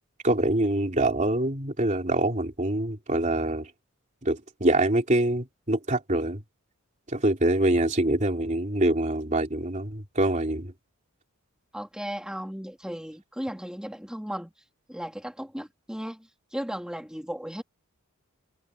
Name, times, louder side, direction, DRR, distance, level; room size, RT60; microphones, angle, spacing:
voice 1, 0.2-3.7 4.2-6.4 7.1-10.7, right 1 dB, 35° right, 3.1 m, -25 dB
voice 2, 11.7-14.5 14.9-17.6, equal, 5° right, 1.9 m, -36 dB
head